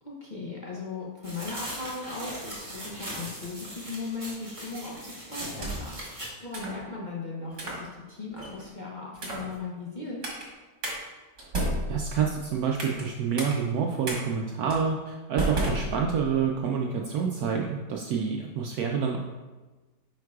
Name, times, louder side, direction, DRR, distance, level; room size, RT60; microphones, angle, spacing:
voice 1, 0.0-10.2, left 4 dB, 45° left, -4 dB, 0.6 m, -38 dB
sound 1, 1.2-6.3, right 1 dB, 20° right, 1.5 m, -40 dB
sound 2, 5.4-6.0 6.5-6.8 7.5-7.8 8.4-8.7 9.2-9.5 10.2-10.4 10.8-11.0 11.4-13.1 13.4-13.5 14.0-14.2 14.7-14.8 15.4-16.4, right 1 dB, 45° right, 1.7 m, -32 dB
voice 2, 11.9-19.2, right 6 dB, 70° right, 0 dB, 1.0 m, -28 dB
9.2 x 4.7 x 2.3 m, 1.2 s
omnidirectional pair, 1.8 m